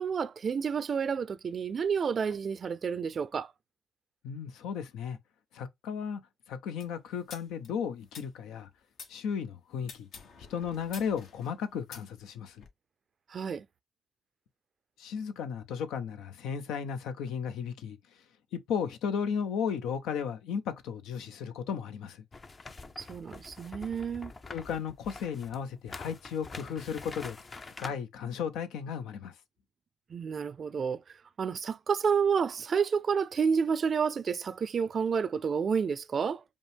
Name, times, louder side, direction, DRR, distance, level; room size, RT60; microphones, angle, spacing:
voice 1, 0.0-3.5 13.3-13.7 23.0-24.3 30.1-36.4, right 6 dB, 45° right, 0.4 m, -30 dB
voice 2, 4.2-5.2 5.5-6.2 6.5-8.7 9.1-10.1 10.4-12.6 15.0-18.2 18.5-22.2 24.5-29.4, left 7 dB, 90° left, 0.6 m, -35 dB
sound 1, 6.8-9.1 9.8-12.7, left 5 dB, 70° left, 1.0 m, -49 dB
sound 2, 22.3-27.9, left 3 dB, 30° left, 0.5 m, -45 dB
5.2 x 2.0 x 3.3 m
cardioid pair, 90°, 0 cm